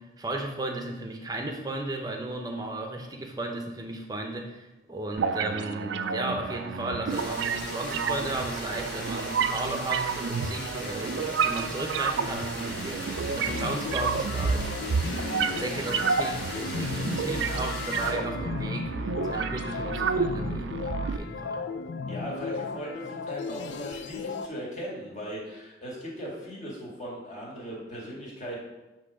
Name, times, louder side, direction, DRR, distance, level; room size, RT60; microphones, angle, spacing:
voice 1, 0.0-21.6, right 2 dB, 20° right, 3 dB, 0.7 m, -35 dB
sound 1, 5.2-21.2, right 5 dB, 75° right, 0.4 m, -30 dB
sound 2, 7.1-18.1, left 1 dB, 55° left, 2.3 m, -39 dB
sound 3, 13.5-24.5, left 4 dB, 70° left, 0.4 m, -36 dB
voice 2, 22.1-28.6, equal, 40° left, -4 dB, 2.0 m, -38 dB
8.1 x 3.2 x 4.9 m, 1.1 s
head